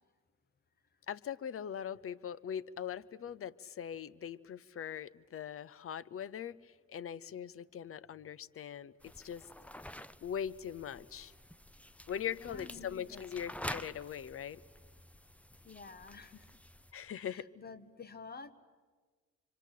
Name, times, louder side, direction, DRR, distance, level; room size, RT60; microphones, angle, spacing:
voice 1, 1.1-9.5 10.2-11.3 12.1-14.6 16.9-17.5, left 8 dB, 45° left, 19 dB, 0.8 m, -41 dB
sound 1, 9.0-16.9, left 1 dB, 5° left, 0.7 m, -48 dB
voice 2, 12.3-13.3 15.6-16.5 17.1-18.5, left 4 dB, 30° left, 13 dB, 1.5 m, -50 dB
26.5 x 24.5 x 8.4 m, 1.5 s
cardioid pair, 90°, 30 cm